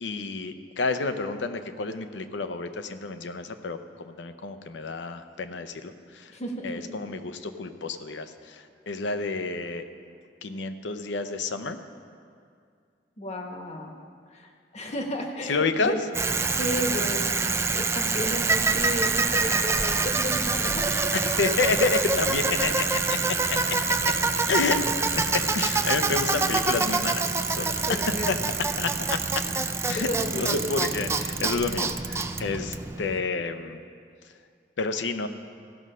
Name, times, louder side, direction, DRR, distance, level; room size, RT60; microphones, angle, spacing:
voice 1, 0.0-6.3 6.6-9.9 10.4-11.8 15.5-16.0 21.1-23.8 24.0-24.1 24.5-24.8 25.2-28.4 28.8-29.5 29.9-33.8 34.8-35.3, left 4 dB, 75° left, 9 dB, 0.6 m, -29 dB
voice 2, 6.3-6.8 13.2-13.9 14.3-15.9 16.2-21.2 27.7-28.4 29.9-30.5, equal, 40° left, 3 dB, 1.1 m, -33 dB
Bicycle, 16.1-33.2, right 4 dB, 15° right, 0.4 m, -26 dB
15.5 x 6.3 x 5.5 m, 2.3 s
head